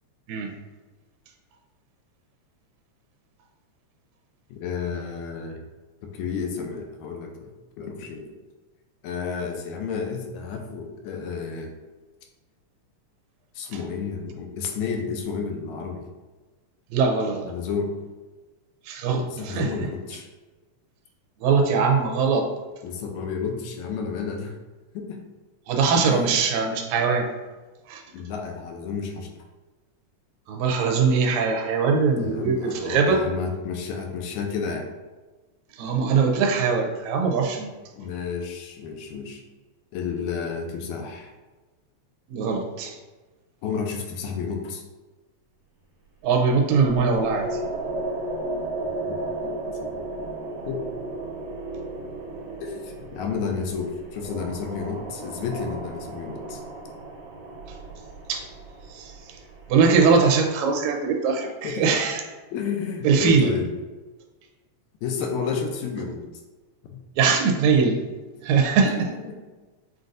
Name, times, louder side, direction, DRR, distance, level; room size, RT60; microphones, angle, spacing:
voice 1, 4.5-5.6 6.0-7.5 7.8-8.3 9.0-11.7 13.6-16.0 17.5-17.9 19.3-20.3 22.8-24.6 24.9-25.2 26.0-26.3 28.1-29.3 32.1-34.9 38.0-39.4 39.9-41.3 43.6-44.8 49.3-50.0 50.7-50.8 52.6-56.6 61.6-61.9 62.5-63.7 65.0-66.2 66.9-67.0 69.0-69.4, left 5 dB, 85° left, 2 dB, 1.9 m, -31 dB
voice 2, 16.9-17.5 18.9-19.9 21.4-22.5 25.7-27.3 27.9-28.0 30.5-33.2 35.8-37.7 42.3-43.0 46.2-47.6 57.7-57.8 58.3-58.4 58.9-59.4 59.7-62.2 63.0-63.5 67.2-68.0 68.4-68.9, right 5 dB, 80° right, 2 dB, 1.8 m, -21 dB
sound 1, 46.4-60.1, right 2 dB, 65° right, 2.0 m, -34 dB
5.8 x 2.6 x 2.5 m, 1.2 s
omnidirectional pair, 3.3 m